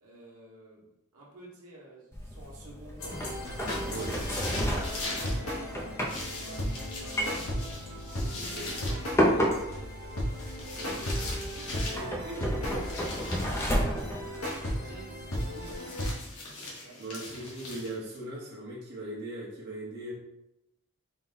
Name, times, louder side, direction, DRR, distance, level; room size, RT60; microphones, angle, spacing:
voice 1, 0.0-3.2 4.8-7.6 8.6-10.1 10.7-12.1 14.3-16.0 16.8-17.2, right 1 dB, 85° right, -5 dB, 1.1 m, -50 dB
sound 1, 2.1-15.8, equal, 10° left, 0.4 m, -33 dB
sound 2, 3.0-16.1, equal, 65° left, 1.0 m, -35 dB
sound 3, 3.4-5.4 6.1-9.0 10.3-12.1 12.8-13.8 15.4-18.2, left 2 dB, 85° left, 1.2 m, -41 dB
voice 2, 3.9-4.2 8.4-8.7 10.8-11.0 11.9-13.3 17.0-20.1, right 1 dB, 50° right, -6 dB, 0.9 m, -40 dB
4.1 x 2.1 x 3.9 m, 0.89 s
head